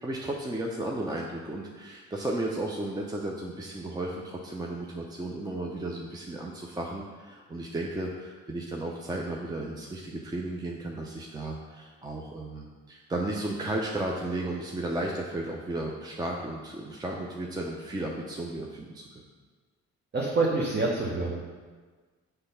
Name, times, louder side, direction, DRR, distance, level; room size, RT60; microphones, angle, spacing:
voice 1, 0.0-19.2, right 1 dB, 15° right, -1 dB, 0.6 m, -34 dB
voice 2, 20.1-21.4, right 3 dB, 35° right, -3 dB, 1.0 m, -26 dB
6.2 x 3.4 x 5.6 m, 1.4 s
cardioid pair, 90°, 30 cm